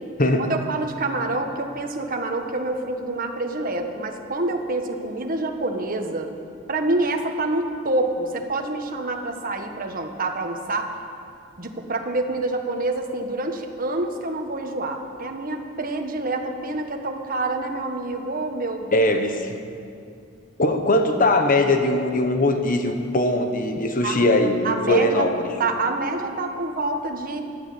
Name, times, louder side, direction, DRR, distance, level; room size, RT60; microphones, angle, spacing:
voice 1, 0.4-6.3 6.7-10.9 11.6-19.1 24.0-24.2 24.6-25.3 25.6-27.4, right 2 dB, 45° right, 4 dB, 1.4 m, -27 dB
voice 2, 18.9-19.6 20.6-25.5, left 1 dB, 40° left, 6 dB, 1.2 m, -20 dB
14.5 x 11.0 x 8.6 m, 2.4 s
head